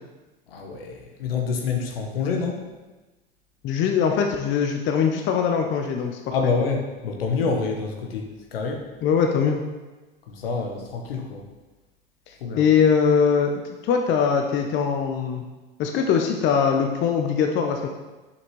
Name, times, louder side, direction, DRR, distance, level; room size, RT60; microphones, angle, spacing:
voice 1, 0.5-2.6 6.3-8.8 10.3-11.4 12.4-12.6, left 4 dB, 70° left, 2 dB, 1.2 m, -27 dB
voice 2, 3.6-6.5 9.0-9.6 12.3-13.5 13.8-15.4 15.8-17.9, left 6 dB, 40° left, 3 dB, 0.7 m, -22 dB
6.7 x 5.8 x 3.1 m, 1.2 s
figure-of-eight pair, 80°, 30 cm